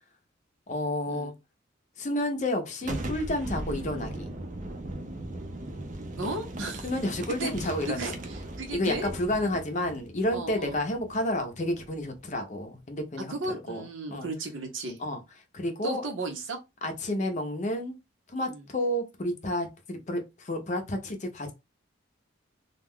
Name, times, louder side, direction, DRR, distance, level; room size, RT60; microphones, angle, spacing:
voice 1, 0.7-1.3 2.0-4.3 6.8-8.2 8.7-13.8 14.1-14.3 15.0-15.2 15.5-16.0 16.8-18.0 18.3-21.5, left 1 dB, 40° left, 0.6 m, -30 dB
Boom, 2.8-12.4, right 1 dB, 40° right, 0.5 m, -39 dB
voice 2, 6.2-6.9 7.4-7.5 7.9-9.1 10.3-10.8 13.2-15.0 15.8-16.6 18.5-18.7, right 2 dB, 80° right, 0.8 m, -35 dB
2.3 x 2.2 x 3.5 m
head